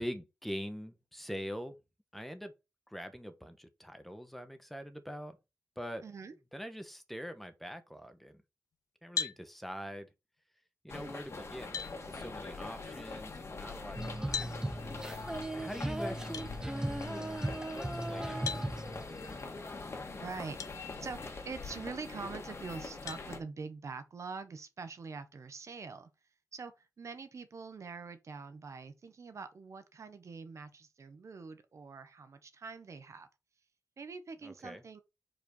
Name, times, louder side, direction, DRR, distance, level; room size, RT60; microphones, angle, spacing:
voice 1, 0.0-1.8 2.1-2.5 2.9-5.4 5.8-6.0 6.5-8.4 9.0-10.1 10.8-11.7 12.0-14.5 15.5-16.7 17.6-18.6 34.4-34.8, equal, 5° left, 1.2 m, -43 dB
voice 2, 6.0-6.3 20.0-26.1 26.5-33.3 34.0-35.0, right 4 dB, 60° right, 1.0 m, -44 dB
sound 1, 9.2-9.4 11.1-11.2 11.7-11.9 14.3-14.6 16.3-16.5 18.5-18.7 20.6-20.7 21.4-21.5 23.1-23.3, left 6 dB, 80° left, 0.7 m, -36 dB
sound 2, 10.9-23.4, left 3 dB, 50° left, 1.9 m, -43 dB
Female singing, 13.9-19.4, right 1 dB, 15° right, 0.8 m, -37 dB
5.0 x 4.4 x 5.4 m
cardioid pair, 75°, 6 cm